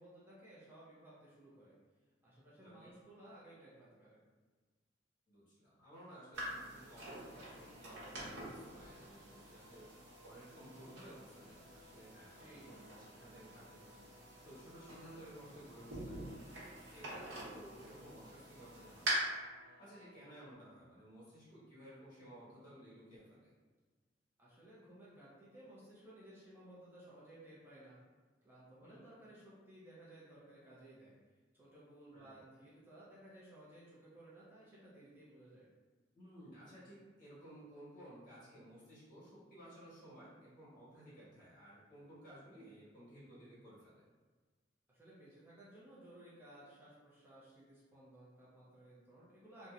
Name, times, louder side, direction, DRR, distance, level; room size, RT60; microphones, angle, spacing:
voice 1, 0.0-1.8 2.2-4.2 12.4-12.7 24.4-28.0 28.4-35.7 44.9-49.7, right 1 dB, 10° right, -8 dB, 0.4 m, -58 dB
voice 2, 2.6-2.9 5.3-9.8 10.2-14.1 14.4-19.3 19.8-23.5 28.8-29.0 32.1-32.4 36.1-44.0, right 1 dB, 50° left, -10 dB, 1.3 m, -56 dB
sound 1, 6.3-19.1, right 2 dB, 80° right, 0.9 m, -48 dB
sound 2, 7.0-20.5, left 1 dB, 70° left, 0.4 m, -63 dB
2.7 x 2.0 x 2.4 m, 1.4 s
head